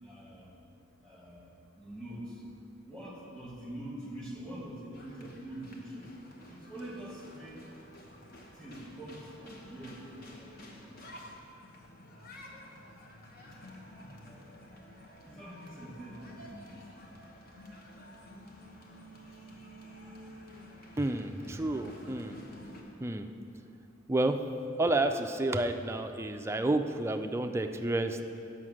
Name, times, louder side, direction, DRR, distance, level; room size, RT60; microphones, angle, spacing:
voice 1, 0.0-0.5 1.0-1.5 1.7-2.4 2.8-6.1 6.5-7.6 8.6-11.0 15.2-16.8, right 1 dB, 5° left, -4 dB, 1.4 m, -44 dB
sound 1, 4.9-22.8, left 1 dB, 50° left, 1.0 m, -51 dB
voice 2, 21.0-22.3 23.0-23.3 24.1-24.4 24.8-28.2, right 2 dB, 15° right, 6 dB, 0.3 m, -30 dB
7.4 x 5.8 x 6.3 m, 2.7 s
head